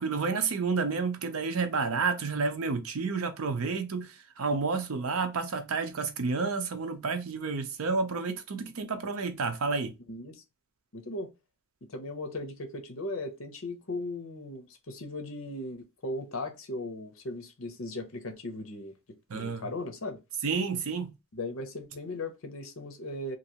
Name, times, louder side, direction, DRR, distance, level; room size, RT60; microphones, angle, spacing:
voice 1, 0.0-9.9 19.3-19.7 20.4-21.1, right 4 dB, 80° right, 0.6 m, -30 dB
voice 2, 10.1-10.4 10.9-11.3 11.9-19.0 19.3-20.2 21.3-23.4, left 2 dB, 65° left, 0.7 m, -37 dB
3.0 x 2.6 x 2.8 m
head